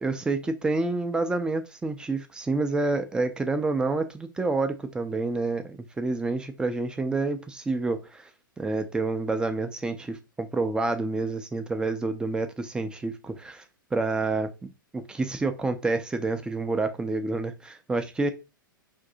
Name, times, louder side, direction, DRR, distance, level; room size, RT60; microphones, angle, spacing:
voice 1, 0.0-8.3 8.6-13.6 13.9-18.3, right 3 dB, 5° right, 0.4 m, -28 dB
2.6 x 2.6 x 3.7 m
figure-of-eight pair, 105°, 12 cm